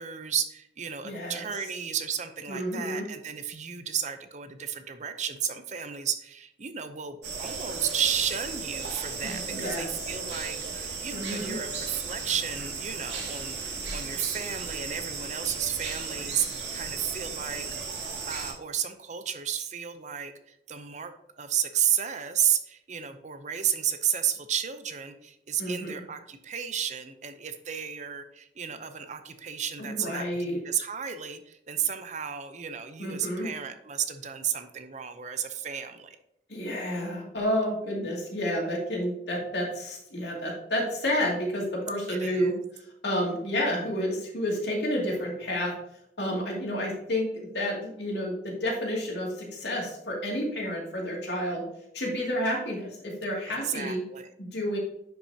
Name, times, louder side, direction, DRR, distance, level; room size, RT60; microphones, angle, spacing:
voice 1, 0.0-17.6 18.3-36.2 42.1-42.5 53.5-54.3, right 9 dB, 40° right, 9 dB, 0.6 m, -32 dB
voice 2, 1.0-1.5 2.5-3.1 9.2-9.9 11.1-11.6 25.6-26.0 29.8-30.6 33.0-33.5 36.5-45.7 46.2-47.3 47.5-51.6 51.9-54.0 54.4-54.8, equal, 75° left, -2 dB, 2.4 m, -30 dB
sound 1, 7.2-18.5, right 4 dB, 80° right, 1.9 m, -35 dB
10.0 x 5.8 x 2.8 m, 0.78 s
head